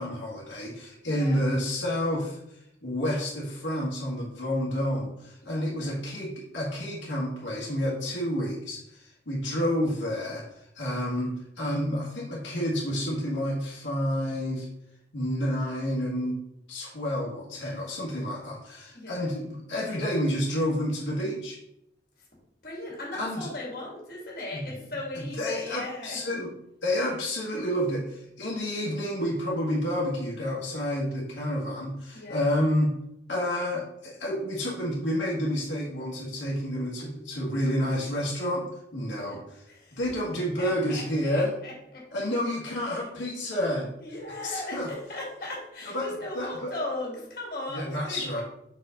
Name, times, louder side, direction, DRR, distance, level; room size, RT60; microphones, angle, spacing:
voice 1, 0.0-14.7 15.1-16.4 16.7-21.6 23.2-23.5 24.5-24.6 25.2-26.5 26.8-32.9 33.3-38.7 38.9-39.6 39.9-41.5 42.1-43.9 44.4-44.9 45.8-46.1 46.4-46.7 47.7-48.4, equal, 85° left, -5 dB, 1.8 m, -29 dB
voice 2, 5.4-6.0 18.9-19.3 22.2-22.3 22.6-26.2 32.1-32.5 39.1-39.4 39.7-40.0 40.6-42.0 42.8-43.0 44.0-48.4, left 2 dB, 50° left, -3 dB, 2.4 m, -38 dB
6.2 x 4.7 x 3.8 m, 0.82 s
head